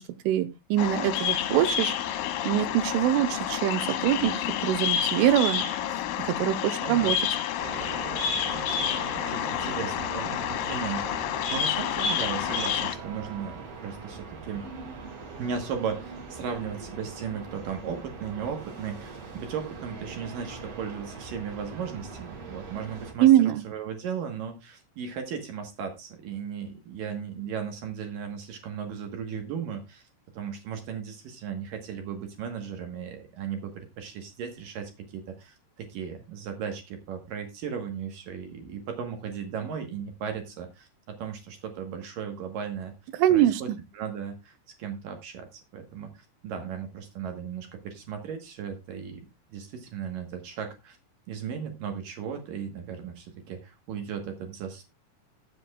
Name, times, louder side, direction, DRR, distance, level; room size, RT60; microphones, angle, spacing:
voice 1, 0.0-1.9 2.4-4.3 4.6-5.6 6.2-7.2 23.2-23.6 43.1-43.8, right 12 dB, 85° right, 11 dB, 3.2 m, -23 dB
Bird vocalization bird call bird song, 0.8-12.9, left 9 dB, 80° left, 3.4 m, -29 dB
voice 2, 6.8-7.1 8.5-11.1 11.5-14.6 15.4-30.1 30.3-42.9 43.3-44.5 44.8-49.2 49.5-51.0 51.3-54.8, right 7 dB, 65° right, 5 dB, 2.2 m, -36 dB
sound 1, 7.6-23.1, right 4 dB, 45° right, 2.1 m, -41 dB
19.0 x 7.6 x 2.3 m, 0.24 s
omnidirectional pair, 5.7 m